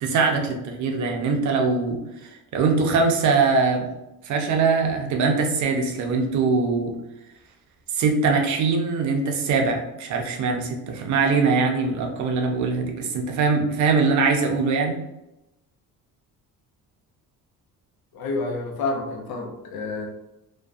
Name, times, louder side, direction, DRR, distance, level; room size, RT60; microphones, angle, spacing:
voice 1, 0.0-3.9 4.2-6.9 7.9-15.0, right 4 dB, 55° right, 2 dB, 0.5 m, -22 dB
voice 2, 18.1-20.1, left 3 dB, 80° left, 1 dB, 0.7 m, -29 dB
2.5 x 2.2 x 2.3 m, 0.91 s
cardioid pair, 170°, 35 cm